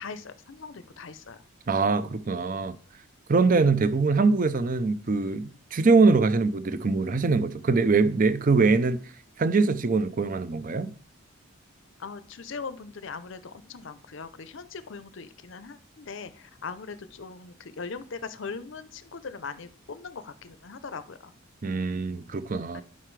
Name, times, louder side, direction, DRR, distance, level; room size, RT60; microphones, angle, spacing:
voice 1, 0.0-1.4 3.5-3.7 12.0-21.3 22.7-22.8, left 5 dB, 60° left, 0.6 m, -40 dB
voice 2, 1.7-2.8 3.3-9.0 9.4-10.9 21.6-22.8, right 4 dB, 40° right, 0.5 m, -23 dB
11.0 x 5.7 x 3.2 m
head